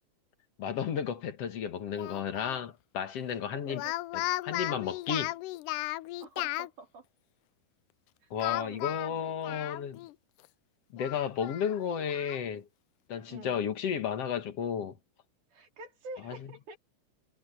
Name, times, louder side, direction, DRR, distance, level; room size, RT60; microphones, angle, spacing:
voice 1, 0.6-3.9 4.1-5.3 8.3-10.0 10.9-12.7 13.1-15.0 16.2-16.4, left 8 dB, 55° left, 2.4 m, -33 dB
Speech, 2.0-2.6 3.7-6.7 8.4-10.1 10.5-10.6 11.0-12.4, left 18 dB, 80° left, 2.0 m, -36 dB
voice 2, 3.5-3.9 6.2-7.1 8.4-9.6 13.3-13.6 15.5-16.8, right 3 dB, 65° right, 4.5 m, -47 dB
omnidirectional pair, 3.8 m